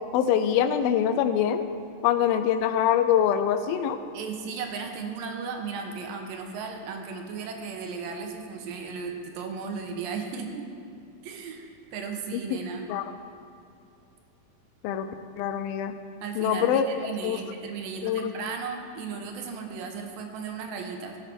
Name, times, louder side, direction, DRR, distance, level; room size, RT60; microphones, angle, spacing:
voice 1, 0.1-1.6 2.0-4.0 12.3-12.6 12.9-13.1 14.8-15.1 15.4-15.9 16.4-16.9 17.2-17.4 18.0-18.3, left 9 dB, 90° left, 10 dB, 2.5 m, -24 dB
voice 2, 4.1-10.7 11.2-12.9 16.2-21.2, right 5 dB, 75° right, 4 dB, 2.7 m, -35 dB
15.5 x 6.6 x 6.1 m, 2.6 s
omnidirectional pair, 4.2 m